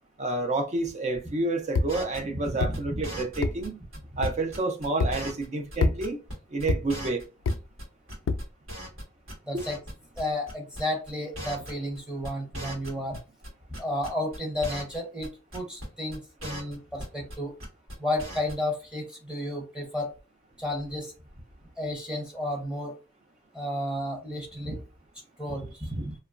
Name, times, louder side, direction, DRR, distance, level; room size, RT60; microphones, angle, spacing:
voice 1, 0.2-3.8 4.2-6.2 6.5-7.2, right 2 dB, 35° right, 0.5 m, -29 dB
sound 1, 1.7-1.9 2.6-2.7 3.4-3.6 4.2-4.4 5.0-5.2 5.8-6.0 6.7-6.8 7.5-7.6 8.3-8.5, left 3 dB, 65° left, 0.3 m, -25 dB
sound 2, 1.9-5.5 5.7-5.8 6.0-6.3 6.6-6.7 6.9-7.8 8.1-9.0 9.3-9.9 10.2-10.3 10.5-10.8 11.1-11.2 11.4-12.0 12.2-13.5 13.7-15.0 15.2-15.3 15.5-15.9 16.1-17.4 17.6-17.9 18.2-18.5, equal, 90° right, 1.6 m, -38 dB
voice 2, 2.6-3.0 9.5-9.8 10.2-13.2 13.8-17.5 18.0-20.1 20.6-21.1 21.8-22.9 23.5-24.8 25.4-26.1, left 1 dB, 5° right, 0.7 m, -32 dB
2.9 x 2.3 x 2.4 m
head